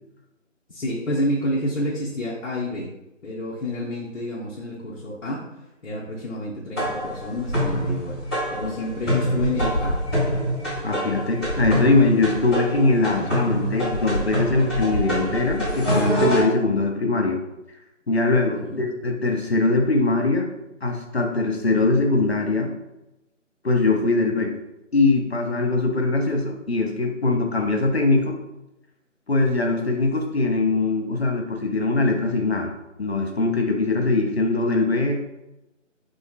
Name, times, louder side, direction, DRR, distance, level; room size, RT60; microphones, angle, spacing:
voice 1, 0.7-2.9 3.2-5.5 5.8-8.2 8.5-10.0 18.4-18.8, left 1 dB, 80° left, -6 dB, 0.8 m, -29 dB
sound 1, 6.8-16.4, equal, 20° left, 1.4 m, -25 dB
voice 2, 10.8-17.4 18.1-20.5 20.8-22.7 23.6-24.5 24.9-28.4 29.3-32.7 33.0-35.3, left 3 dB, 55° left, 2 dB, 0.5 m, -21 dB
3.7 x 2.0 x 2.3 m, 0.95 s
figure-of-eight pair, 180°, 38 cm